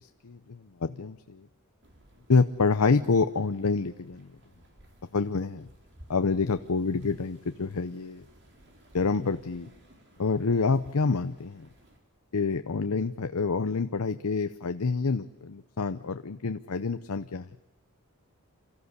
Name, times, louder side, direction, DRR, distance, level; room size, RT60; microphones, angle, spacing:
voice 1, 0.0-1.5 2.3-4.4 5.1-5.7 6.1-8.2 8.9-9.7 10.2-11.7 12.3-17.4, left 4 dB, 80° left, 10 dB, 0.7 m, -27 dB
sound 1, 1.8-12.0, equal, 50° right, 4.4 m, -57 dB
27.5 x 14.5 x 8.1 m, 1.1 s
head